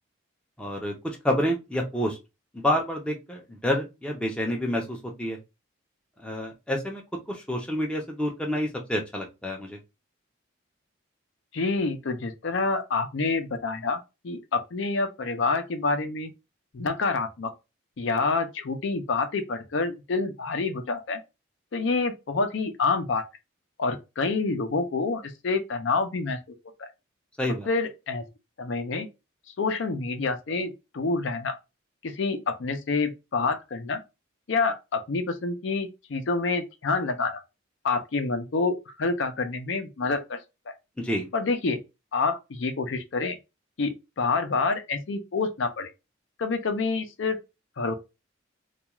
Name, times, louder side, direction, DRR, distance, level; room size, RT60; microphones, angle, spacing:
voice 1, 0.6-2.2 2.5-5.4 6.2-7.0 7.3-9.8 27.4-27.7 41.0-41.3, left 1 dB, 5° left, 0.5 m, -28 dB
voice 2, 11.5-14.0 14.2-16.3 16.7-17.5 18.0-21.2 21.7-23.2 23.8-26.4 26.8-26.9 27.7-28.2 28.6-29.1 29.6-31.6 32.0-34.0 34.5-37.4 37.8-40.4 40.7-40.8 41.3-41.8 42.1-43.4 43.8-45.9 46.4-47.4 47.8-47.9, left 4 dB, 65° left, 0.5 m, -27 dB
2.3 x 2.3 x 2.8 m
head